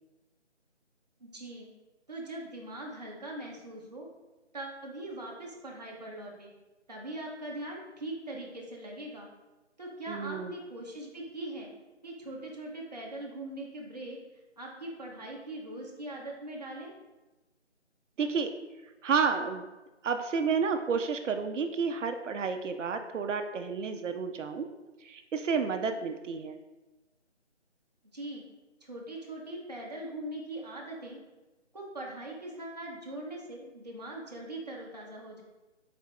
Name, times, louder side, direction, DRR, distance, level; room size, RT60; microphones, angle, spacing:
voice 1, 1.2-1.7 2.1-4.1 4.5-6.5 6.9-9.3 9.8-11.7 12.0-14.2 14.6-16.9 28.1-28.4 28.8-31.2 31.7-35.4, right 1 dB, 35° right, -2 dB, 0.6 m, -41 dB
voice 2, 10.1-10.5 18.2-18.5 19.0-19.6 20.0-24.7 25.0-26.6, right 5 dB, 85° right, 7 dB, 0.5 m, -30 dB
4.0 x 2.3 x 4.4 m, 1.1 s
figure-of-eight pair, 170°, 36 cm